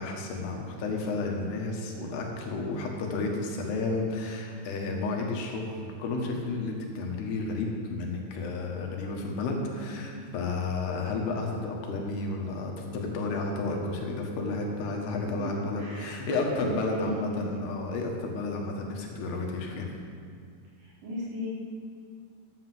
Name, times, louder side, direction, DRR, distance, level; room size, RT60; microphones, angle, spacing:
voice 1, 0.0-19.9, left 3 dB, 75° left, 1 dB, 3.4 m, -32 dB
voice 2, 9.5-9.9 15.8-17.5 20.8-21.5, equal, 80° right, -9 dB, 6.2 m, -37 dB
11.0 x 7.9 x 7.6 m, 2.2 s
omnidirectional pair, 4.8 m